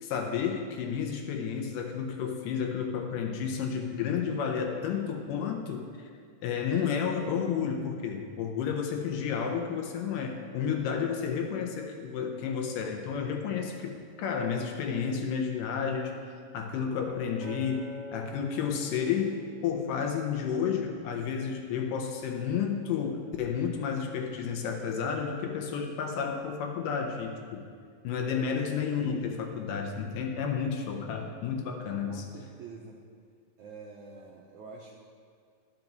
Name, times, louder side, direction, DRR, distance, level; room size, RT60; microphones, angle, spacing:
voice 1, 0.0-5.9 6.4-16.1 16.5-27.6 28.0-32.2, left 7 dB, 75° left, 2 dB, 2.2 m, -31 dB
Acoustic guitar, 17.4-21.7 22.3-22.6, left 2 dB, 25° right, 2.1 m, -46 dB
voice 2, 28.4-29.4 32.1-33.0 33.6-34.9, right 4 dB, 80° right, -1 dB, 1.7 m, -47 dB
12.0 x 6.0 x 4.0 m, 2.1 s
omnidirectional pair, 4.1 m